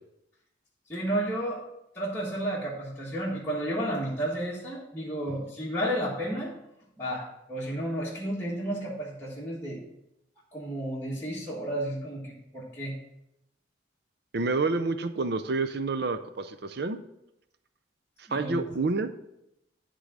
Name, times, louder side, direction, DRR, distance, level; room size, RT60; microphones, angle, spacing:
voice 1, 0.9-1.6 1.9-6.5 7.0-9.8 10.5-13.0 18.3-18.8, right 1 dB, 10° left, -8 dB, 1.6 m, -32 dB
voice 2, 14.3-17.0 18.3-19.1, right 3 dB, 55° right, 9 dB, 0.5 m, -28 dB
11.5 x 3.8 x 7.3 m, 0.84 s
head